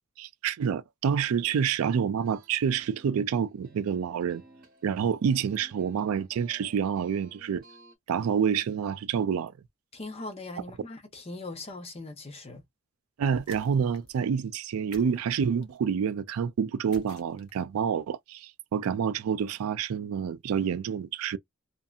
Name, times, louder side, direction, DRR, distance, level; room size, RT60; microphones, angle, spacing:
voice 1, 0.2-4.4 4.8-7.6 8.1-9.5 13.2-21.4, right 7 dB, 85° right, 0.3 m, -28 dB
sound 1, 2.2-8.0, right 3 dB, 45° right, 0.9 m, -56 dB
voice 2, 9.9-12.6, left 2 dB, 30° left, 0.7 m, -40 dB
sound 2, 13.4-14.2 14.9-15.8 16.9-17.8, left 4 dB, 90° left, 0.8 m, -52 dB
2.6 x 2.6 x 2.4 m
head